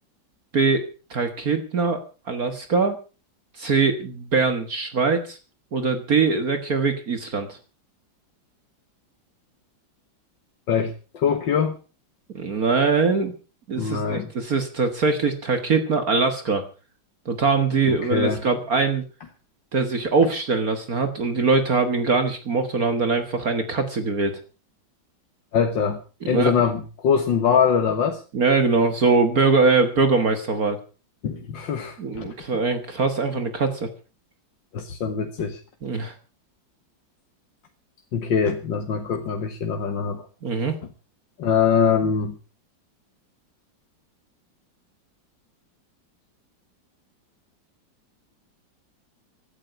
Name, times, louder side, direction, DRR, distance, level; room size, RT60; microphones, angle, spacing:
voice 1, 0.5-3.0 3.6-5.4 5.7-7.6 12.3-13.3 13.7-16.6 17.3-19.0 19.7-24.4 26.2-26.5 28.3-30.8 32.0-33.9 35.8-36.1 40.4-40.7, right 4 dB, 50° right, 8 dB, 2.0 m, -22 dB
voice 2, 10.7-11.8 13.8-14.3 17.9-18.4 25.5-26.0 26.3-28.2 31.2-32.3 34.7-35.6 38.1-40.2 41.4-42.4, left 7 dB, 70° left, 5 dB, 2.1 m, -23 dB
16.5 x 12.0 x 5.8 m, 0.35 s
omnidirectional pair, 2.1 m